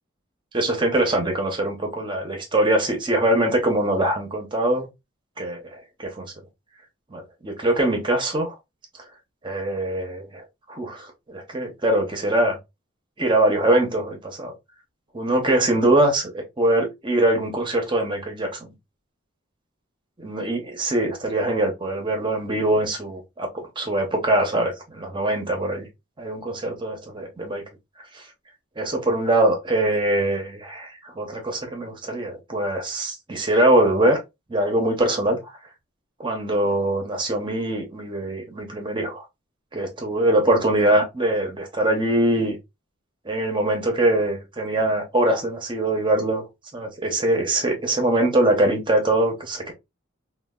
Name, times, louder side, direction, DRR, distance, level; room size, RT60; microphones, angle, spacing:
voice 1, 0.5-4.9 5.4-6.3 7.1-8.5 9.4-10.4 10.7-12.6 13.2-14.5 15.1-18.7 20.2-25.9 26.2-27.6 28.1-28.2 28.8-34.2 34.5-35.4 36.2-39.2 39.7-42.6 43.3-46.4 46.7-49.7, right 1 dB, 25° right, 0.7 m, -23 dB
3.2 x 2.2 x 2.2 m
head